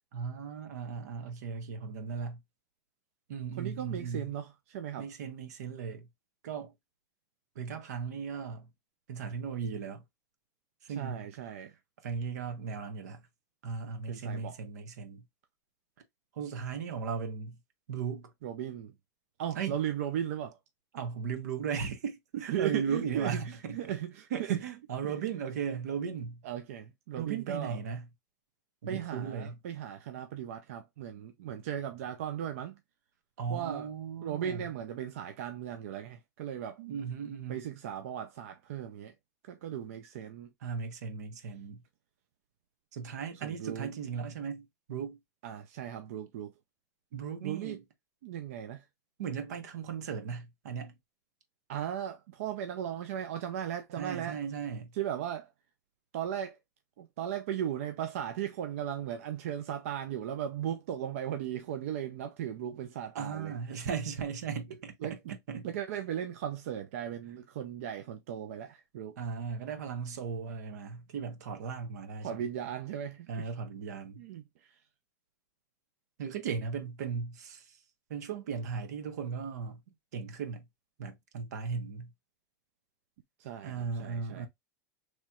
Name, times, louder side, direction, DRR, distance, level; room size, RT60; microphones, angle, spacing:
voice 1, 0.1-2.4 3.3-4.3 5.0-6.1 6.4-6.7 7.5-8.7 9.1-10.0 10.8-11.3 12.0-13.2 13.6-15.2 16.3-17.6 17.9-18.3 19.5-19.7 20.9-23.9 24.3-26.4 27.2-28.1 28.8-29.6 33.4-34.6 36.8-37.6 40.6-41.8 42.9-45.2 47.1-47.8 49.2-51.0 54.0-54.9 63.1-65.7 69.2-72.5 73.3-74.2 76.2-77.8 78.1-79.8 80.1-80.6 81.0-82.1 83.6-84.5, right 6 dB, 80° right, 1.1 m, -37 dB
voice 2, 3.6-5.1 11.0-11.7 14.1-14.6 18.4-18.9 19.4-20.6 22.3-24.6 25.0-25.2 26.4-27.8 28.9-32.8 33.5-33.9 34.2-36.8 37.5-39.1 39.5-40.5 43.4-43.9 45.4-46.5 47.4-47.8 48.2-48.9 51.7-54.4 54.9-55.5 56.1-56.6 57.0-63.5 65.0-65.2 65.6-69.2 72.2-73.5 74.2-74.7 83.4-84.5, right 10 dB, 55° right, 0.4 m, -37 dB
4.3 x 3.1 x 2.3 m
supercardioid pair, 180°, 9 cm